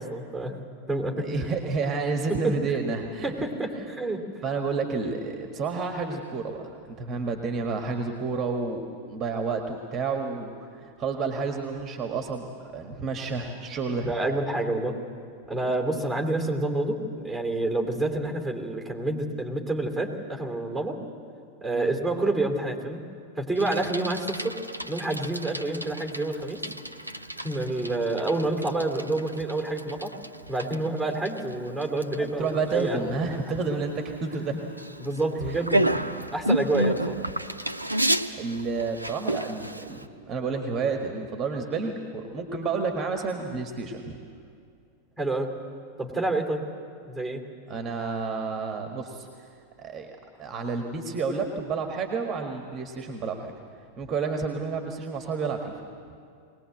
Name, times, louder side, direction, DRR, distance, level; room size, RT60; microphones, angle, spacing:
voice 1, 0.0-1.3 2.3-2.5 3.2-4.2 14.1-15.0 15.5-21.0 21.6-23.0 23.4-24.6 24.9-26.6 27.4-30.1 30.5-33.3 35.0-36.0 36.3-37.2 45.2-45.5 46.0-46.6 47.1-47.4, right 2 dB, ahead, 2 dB, 2.9 m, -28 dB
voice 2, 1.2-3.5 3.7-3.8 4.4-8.8 9.1-14.1 21.7-21.9 32.2-34.5 35.5-35.6 38.4-44.2 47.7-49.5 49.8-53.5 54.0-55.9, right 4 dB, 25° right, 5 dB, 1.6 m, -30 dB
Bicycle, 23.5-40.0, right 1 dB, 85° right, 0.7 m, -32 dB
21.5 x 19.0 x 7.9 m, 2.4 s
figure-of-eight pair, 90°, 0 cm